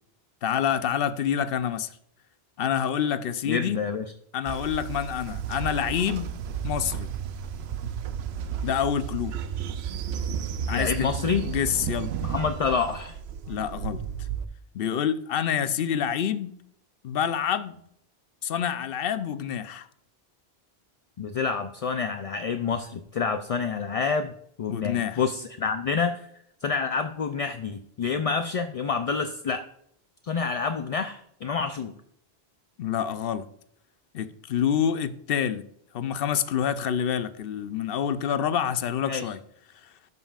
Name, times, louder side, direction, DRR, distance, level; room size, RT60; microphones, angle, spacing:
voice 1, 0.4-1.9 2.6-3.8 4.3-6.3 6.6-7.1 8.6-9.3 10.7-12.1 13.5-14.0 14.7-16.5 17.0-17.8 18.4-19.9 24.7-25.2 32.8-33.5 34.1-35.6 35.9-39.4, left 8 dB, 65° left, 0.8 m, -27 dB
voice 2, 3.5-4.1 10.7-11.4 12.2-13.2 21.2-24.3 24.6-26.3 26.6-29.6 30.2-31.9 39.0-39.2, left 5 dB, 50° left, 0.4 m, -28 dB
Train, 4.5-14.5, right 8 dB, 85° right, 0.9 m, -33 dB
12.5 x 5.4 x 2.4 m
omnidirectional pair, 1.1 m